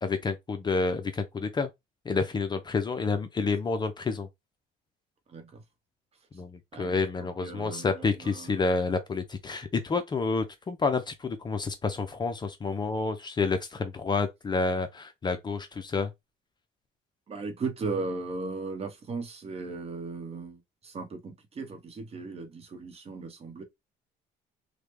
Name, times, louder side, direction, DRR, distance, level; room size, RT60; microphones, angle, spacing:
voice 1, 0.0-1.7 2.1-4.3 6.3-16.1, left 4 dB, 25° left, 0.5 m, -29 dB
voice 2, 5.3-5.6 6.7-8.6 17.3-23.6, right 3 dB, 35° right, 0.9 m, -37 dB
3.2 x 2.2 x 3.1 m
cardioid pair, 110°, 17 cm